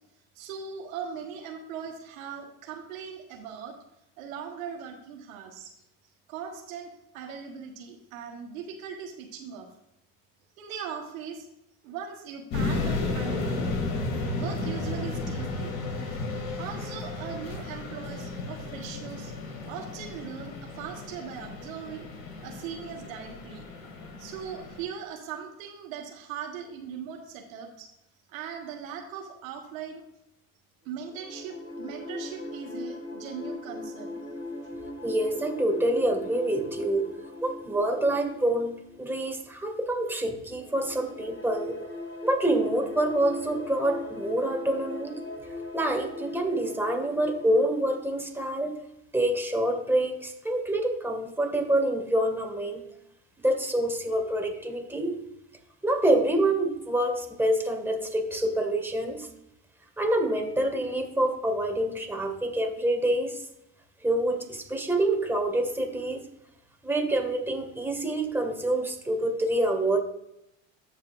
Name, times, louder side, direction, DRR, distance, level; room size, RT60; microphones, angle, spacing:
voice 1, 0.3-3.8 4.2-5.7 6.3-9.7 10.6-11.5 11.8-13.7 14.3-15.7 16.6-19.3 19.7-22.1 22.4-23.7 24.2-27.9 28.3-30.0 30.8-34.2, right 7 dB, 85° right, 3 dB, 1.4 m, -39 dB
sound 1, 12.5-24.8, left 3 dB, 65° left, 2.7 m, -33 dB
sound 2, 30.9-39.6 40.6-48.0, left 2 dB, 30° left, 2.8 m, -40 dB
voice 2, 35.0-37.1 37.4-38.7 39.0-41.8 42.2-45.2 45.7-48.7 49.1-52.8 53.4-55.2 55.8-59.3 60.0-63.4 64.0-66.2 66.8-70.0, right 1 dB, 5° right, 3 dB, 1.8 m, -26 dB
14.0 x 5.6 x 2.5 m, 0.83 s
hypercardioid pair, 80°, 40 cm